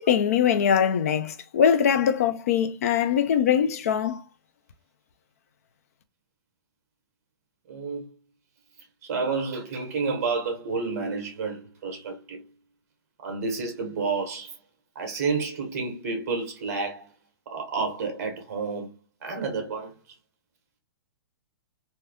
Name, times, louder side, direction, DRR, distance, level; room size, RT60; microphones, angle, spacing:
voice 1, 0.0-4.2, left 8 dB, 40° left, 0.4 m, -22 dB
voice 2, 7.7-8.1 9.0-12.4 13.2-14.6 14.9-17.1 17.5-18.9 19.2-19.9, right 4 dB, 40° right, 1.1 m, -30 dB
3.3 x 2.7 x 2.2 m
hypercardioid pair, 175°, 13 cm